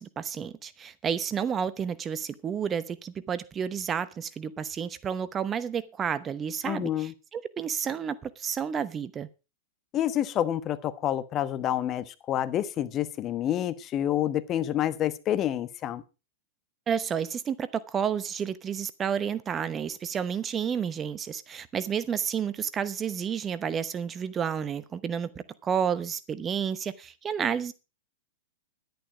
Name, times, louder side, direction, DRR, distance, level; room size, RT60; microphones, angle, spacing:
voice 1, 0.0-9.3 16.9-25.3 25.6-27.7, right 7 dB, 25° right, 0.9 m, -31 dB
voice 2, 6.6-7.1 9.9-16.0, left 11 dB, 35° left, 1.1 m, -28 dB
11.0 x 10.5 x 5.0 m
hypercardioid pair, 105°, 0 cm